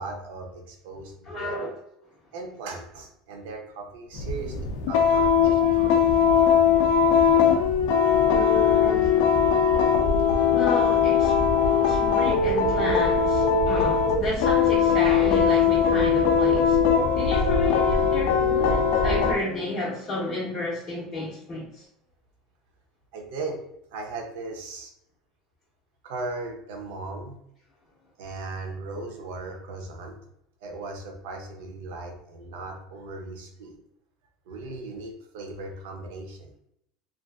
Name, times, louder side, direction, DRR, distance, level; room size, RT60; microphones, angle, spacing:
voice 1, 0.0-1.6 2.3-4.6 4.9-6.6 6.9-7.0 7.6-8.2 23.1-23.6 23.9-24.9 26.0-27.4 28.2-30.2 30.6-33.8 34.5-36.5, right 3 dB, 75° right, 3 dB, 0.6 m, -38 dB
voice 2, 1.2-1.7 8.3-9.2 10.5-16.8 17.1-21.9, left 2 dB, 20° left, -7 dB, 0.5 m, -32 dB
sound 1, 4.1-19.3, left 6 dB, 70° left, 0.3 m, -20 dB
2.5 x 2.4 x 2.3 m, 0.78 s
cardioid pair, 165°, 0 cm